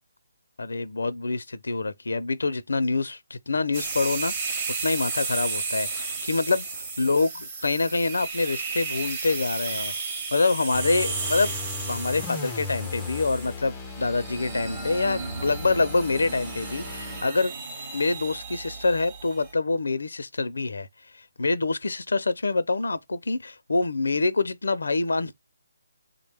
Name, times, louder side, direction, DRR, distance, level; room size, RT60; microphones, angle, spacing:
voice 1, 0.6-4.5 4.8-7.3 7.6-9.9 10.3-11.5 11.8-17.5 17.9-20.9 21.4-25.3, left 3 dB, 80° left, 0.5 m, -26 dB
sound 1, 3.7-19.5, right 4 dB, 25° right, 0.7 m, -34 dB
sound 2, 10.7-17.3, left 5 dB, 10° left, 0.3 m, -37 dB
3.5 x 2.1 x 3.3 m
hypercardioid pair, 170°, 0 cm